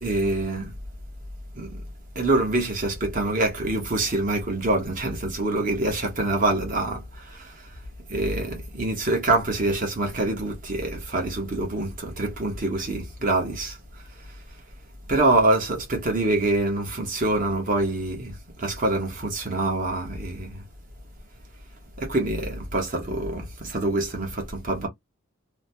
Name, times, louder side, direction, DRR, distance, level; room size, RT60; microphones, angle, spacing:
voice 1, 0.0-0.7 1.6-1.8 2.1-7.7 8.1-13.8 15.1-20.6 22.0-24.9, right 2 dB, 40° right, 0.9 m, -25 dB
2.9 x 2.1 x 2.7 m
head